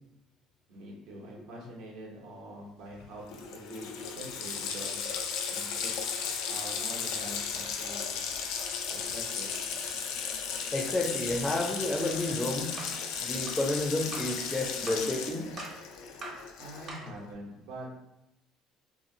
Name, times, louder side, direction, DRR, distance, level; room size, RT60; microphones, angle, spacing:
voice 1, 0.7-5.0 5.5-5.9 6.5-8.3 8.9-9.5 16.6-17.9, right 1 dB, 80° right, -2 dB, 0.9 m, -44 dB
Water tap faucet, 3.0-3.1 3.3-17.1, left 6 dB, 80° left, 0.4 m, -35 dB
voice 2, 10.7-12.7 13.2-15.5, left 2 dB, 15° left, 2 dB, 0.5 m, -30 dB
sound 1, 12.1-12.3 12.8-13.0 13.5-13.6 14.1-14.4 14.9-15.1 15.6-15.8 16.2-16.5 16.9-17.2, right 2 dB, 45° right, 0.7 m, -42 dB
2.7 x 2.7 x 2.7 m, 0.87 s
cardioid pair, 115°, 0 cm